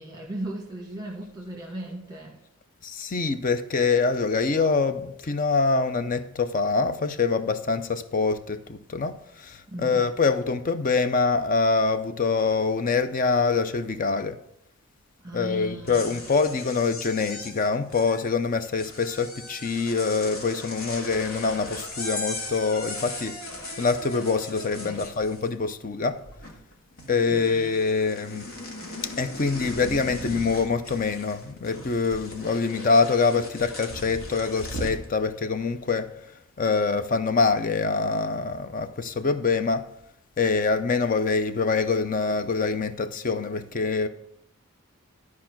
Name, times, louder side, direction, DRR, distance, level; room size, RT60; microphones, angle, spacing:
voice 1, 0.0-2.4 9.7-10.0 15.2-16.2 24.8-25.1 27.3-27.6, right 1 dB, 15° right, 1.2 m, -37 dB
voice 2, 2.8-14.4 15.3-23.4 23.8-26.2 27.1-28.5 29.2-36.2 36.6-39.9 40.4-44.1, left 4 dB, 40° left, 0.5 m, -25 dB
sound 1, 15.7-25.7 26.0-26.7 27.0-35.1, left 1 dB, 75° left, 2.0 m, -38 dB
12.5 x 4.8 x 5.9 m
head